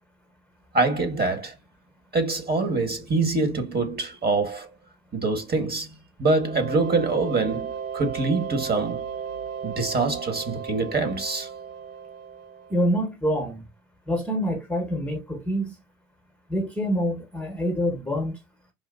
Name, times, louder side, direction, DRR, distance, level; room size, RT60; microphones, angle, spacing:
voice 1, 0.7-1.5 2.1-4.7 5.1-5.9 6.2-9.0 9.6-11.5, right 3 dB, 25° right, 1.7 m, -25 dB
sound 1, 6.3-12.9, right 7 dB, 60° right, 1.9 m, -35 dB
voice 2, 12.7-13.6 14.1-15.8 16.5-18.4, equal, 5° left, 1.2 m, -26 dB
5.1 x 2.5 x 2.6 m
hypercardioid pair, 60°, 38 cm